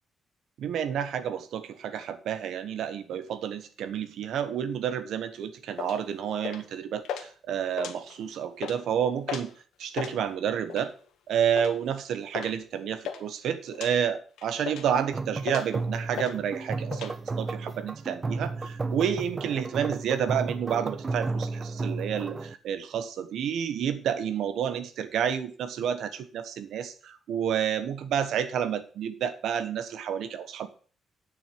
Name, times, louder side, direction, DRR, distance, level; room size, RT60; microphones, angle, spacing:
voice 1, 0.6-9.5 9.8-10.9 11.3-30.7, right 8 dB, 75° right, 12 dB, 1.2 m, -30 dB
sound 1, 5.8-6.0 6.4-6.7 7.0-7.3 7.7-8.2 8.5-8.8 9.3-9.5 9.8-10.1 10.7-11.0 11.6-11.8 12.3-12.5 12.8-13.2 13.7-13.9 14.4-15.0 15.4-15.8 16.2-16.4 16.6-17.1, left 8 dB, 90° left, 1.6 m, -36 dB
sound 2, 15.0-22.5, right 3 dB, 25° right, 0.6 m, -33 dB
10.0 x 6.1 x 5.2 m, 0.41 s
cardioid pair, 120°, 0 cm